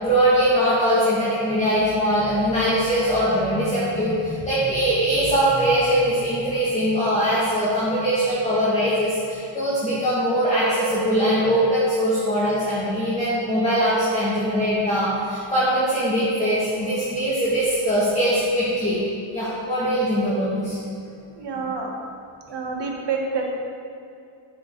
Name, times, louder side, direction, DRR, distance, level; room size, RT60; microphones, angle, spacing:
voice 1, 0.0-19.0 19.3-20.8 21.5-21.6, equal, 15° left, -11 dB, 2.2 m, -21 dB
voice 2, 21.4-21.9 22.5-23.5, right 4 dB, 55° right, 0 dB, 1.5 m, -27 dB
9.1 x 7.8 x 3.9 m, 2.4 s
cardioid pair, 105°, 50 cm